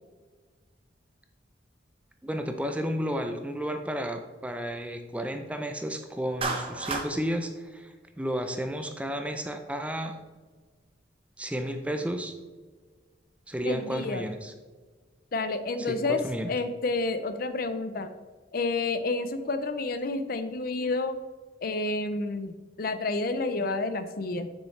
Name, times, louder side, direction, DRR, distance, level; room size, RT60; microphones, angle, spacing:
voice 1, 2.2-10.2 11.4-12.3 13.5-14.5 15.8-16.5, equal, 5° right, 6 dB, 0.5 m, -32 dB
Clapping, 6.4-7.1, right 3 dB, 30° right, 1.0 m, -30 dB
voice 2, 13.6-14.3 15.3-16.2 16.5-18.1 18.5-21.1 21.6-24.5, left 3 dB, 50° left, 10 dB, 0.5 m, -29 dB
7.4 x 6.3 x 3.2 m, 1.4 s
head